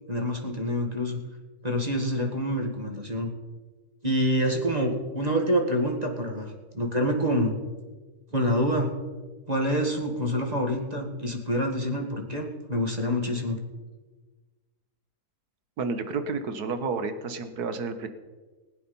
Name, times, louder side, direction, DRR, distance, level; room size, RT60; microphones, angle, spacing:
voice 1, 0.1-1.2 1.6-3.3 4.0-7.6 8.3-8.9 9.5-13.6, equal, 25° right, 2 dB, 2.0 m, -27 dB
voice 2, 15.8-18.1, right 4 dB, 70° right, 9 dB, 1.7 m, -30 dB
20.0 x 9.3 x 5.5 m, 1.3 s
omnidirectional pair, 1.7 m